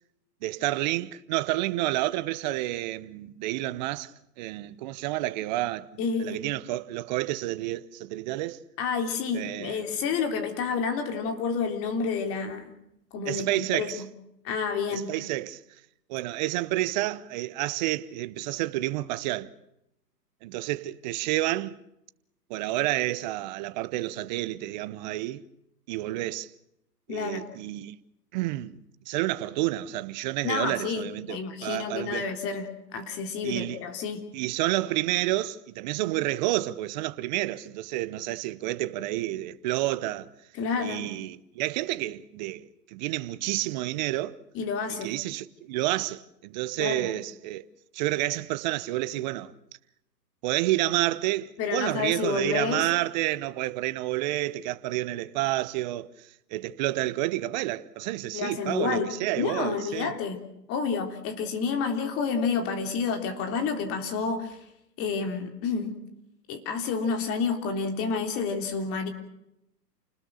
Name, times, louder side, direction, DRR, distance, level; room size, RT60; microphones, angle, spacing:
voice 1, 0.4-4.1 4.4-5.9 6.2-8.6 9.3-10.0 13.2-14.0 14.9-15.6 16.1-19.5 20.4-21.8 22.5-25.4 25.9-26.5 27.1-28.0 28.3-28.8 29.1-32.3 33.4-33.8 34.3-40.3 40.8-44.4 45.0-47.7 47.9-49.5 50.4-56.1 56.5-60.1, right 16 dB, 25° right, 0.9 m, -29 dB
voice 2, 6.0-6.7 8.8-12.7 13.1-14.1 14.4-15.1 27.1-27.4 30.4-34.2 40.5-41.2 44.5-45.1 46.8-47.1 51.6-52.8 58.3-60.4 60.7-64.6 65.0-66.0 66.5-69.1, left 5 dB, 25° left, 3.6 m, -29 dB
29.5 x 20.0 x 6.4 m
hypercardioid pair, 135°, 50 cm